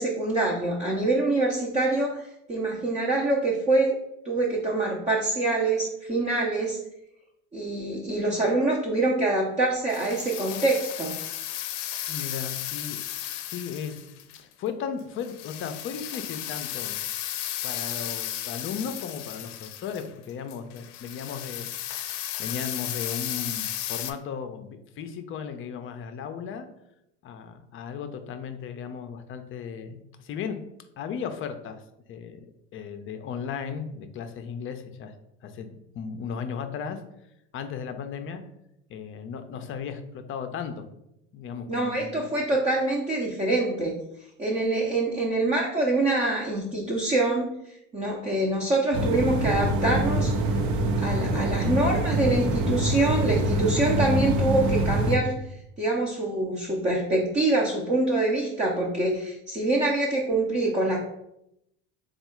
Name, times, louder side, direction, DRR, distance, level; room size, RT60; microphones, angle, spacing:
voice 1, 0.0-4.0 4.2-6.8 7.5-11.2 41.7-43.9 44.4-47.5 47.9-50.3 51.0-55.4 55.8-61.0, right 2 dB, 20° right, -2 dB, 0.6 m, -25 dB
sound 1, 9.9-14.4 15.2-24.1, left 12 dB, 80° left, 0.5 m, -34 dB
voice 2, 12.1-13.0 13.4-14.0 14.3-17.0 17.6-21.7 22.1-26.7 27.2-30.6 31.0-31.8 32.1-32.5 32.7-35.1 35.4-37.0 37.5-38.4 38.9-40.8 41.3-42.3, left 7 dB, 35° left, 8 dB, 0.5 m, -36 dB
sound 2, 48.9-55.2, right 1 dB, 55° right, 0.7 m, -25 dB
3.4 x 2.4 x 4.3 m, 0.81 s
supercardioid pair, 100°, 36 cm